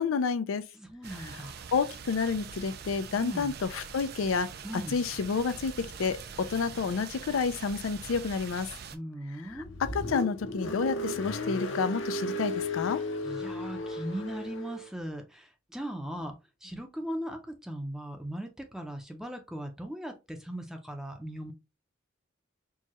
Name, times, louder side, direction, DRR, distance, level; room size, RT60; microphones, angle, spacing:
voice 1, 0.0-0.6 1.3-1.4 1.7-4.5 4.7-8.7 9.5-13.0, left 5 dB, 80° left, 0.4 m, -30 dB
voice 2, 0.7-1.6 3.1-3.6 4.6-5.0 8.9-9.7 13.2-21.5, equal, ahead, 0.6 m, -39 dB
sound 1, 1.0-9.0, right 6 dB, 50° right, 0.4 m, -44 dB
Car, 9.4-14.9, left 1 dB, 60° left, 0.8 m, -35 dB
4.6 x 2.3 x 2.9 m
head